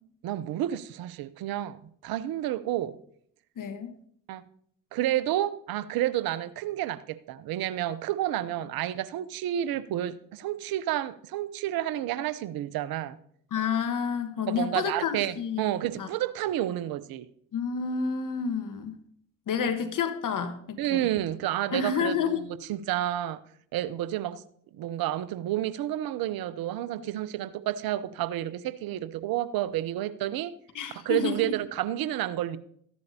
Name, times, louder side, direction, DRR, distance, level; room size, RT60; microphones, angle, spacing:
voice 1, 0.2-3.0 4.3-4.4 4.9-13.2 14.5-17.3 19.6-19.7 20.8-23.4 23.7-24.4 24.7-30.5 31.0-32.6, right 13 dB, 65° right, 15 dB, 0.8 m, -30 dB
voice 2, 3.6-3.9 13.5-15.6 16.0-16.1 17.5-19.0 19.5-21.1 21.7-22.4 30.7-31.6, left 6 dB, 55° left, 8 dB, 1.3 m, -29 dB
14.5 x 10.5 x 2.8 m, 0.66 s
hypercardioid pair, 45°, 38 cm